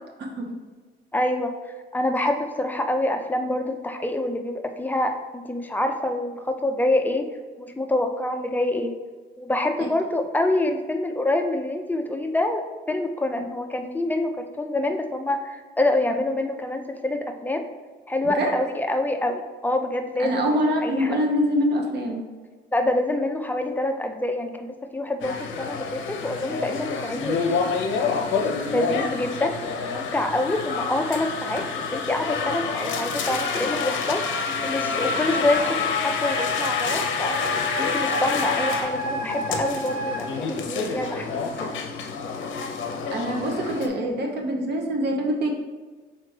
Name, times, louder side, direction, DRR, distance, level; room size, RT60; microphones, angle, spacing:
voice 1, 1.1-7.3 7.6-8.9 9.4-17.6 18.1-20.4 20.8-21.2 22.7-27.8 28.7-31.7 31.9-37.4 37.8-41.4, left 1 dB, 10° left, 5 dB, 0.4 m, -26 dB
voice 2, 18.2-18.5 20.2-22.2 39.2-39.4 43.1-45.5, equal, 60° right, 1 dB, 0.8 m, -25 dB
general behind counter, 25.2-43.9, left 5 dB, 75° left, 0.6 m, -28 dB
Wind instrument woodwind instrument, 35.5-40.2, equal, 90° right, 1.0 m, -30 dB
4.0 x 3.2 x 3.2 m, 1.4 s
cardioid pair, 90°, 20 cm